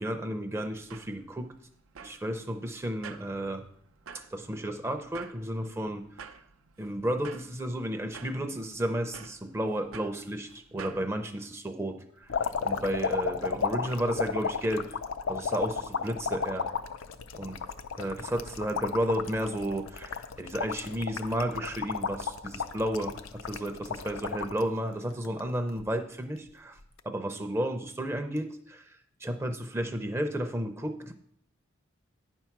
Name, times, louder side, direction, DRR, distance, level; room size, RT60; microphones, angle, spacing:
voice 1, 0.0-1.5 2.0-3.6 4.3-6.0 6.8-12.4 12.6-15.0 15.3-16.7 17.3-17.6 18.0-26.8 27.0-31.2, right 1 dB, 10° right, 6 dB, 0.4 m, -32 dB
sound 1, 0.6-11.1, right 6 dB, 85° right, 0.5 m, -50 dB
sound 2, 12.3-24.6 25.1-25.8 26.8-27.0, left 6 dB, 90° left, 0.5 m, -33 dB
9.5 x 4.5 x 5.9 m, 0.70 s
head